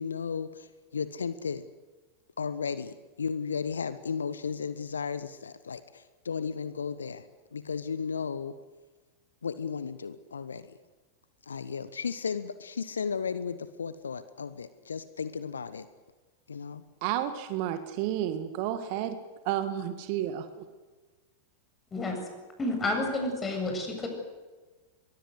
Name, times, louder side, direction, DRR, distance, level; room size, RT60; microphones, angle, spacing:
voice 1, 0.0-1.6 2.4-7.2 7.5-8.6 9.4-10.8 11.5-15.9 16.5-16.8, left 6 dB, 70° left, 14 dB, 1.0 m, -34 dB
voice 2, 17.0-19.2 19.5-20.6, right 11 dB, 45° right, 10 dB, 1.9 m, -31 dB
voice 3, 22.6-24.1, left 2 dB, 20° left, 4 dB, 7.7 m, -30 dB
23.0 x 21.5 x 8.2 m, 1.3 s
figure-of-eight pair, 90°, 0 cm